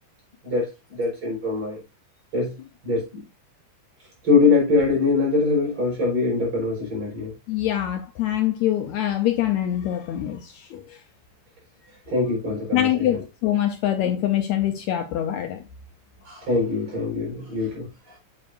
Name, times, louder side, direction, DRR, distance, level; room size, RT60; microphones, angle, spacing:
voice 1, 0.4-1.8 2.3-3.2 4.2-7.3 12.1-13.2 16.2-18.2, left 3 dB, 40° right, 5.0 m, -23 dB
voice 2, 7.5-10.8 12.7-15.6, left 12 dB, 75° left, 1.8 m, -24 dB
8.9 x 7.9 x 2.5 m
omnidirectional pair, 3.8 m